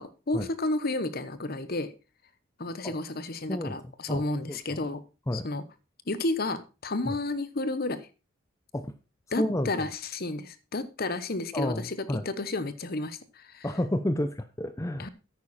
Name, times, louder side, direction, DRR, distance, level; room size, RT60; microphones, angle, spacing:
voice 1, 0.0-1.9 2.6-5.0 5.3-5.6 6.1-8.1 9.3-13.7 15.0-15.1, left 2 dB, 45° left, 14 dB, 1.0 m, -32 dB
voice 2, 4.1-4.6 5.3-5.5 7.1-7.2 8.7-8.9 9.4-9.9 11.5-12.2 13.6-15.1, left 1 dB, 15° left, 10 dB, 0.6 m, -30 dB
9.8 x 9.1 x 4.2 m, 0.30 s
head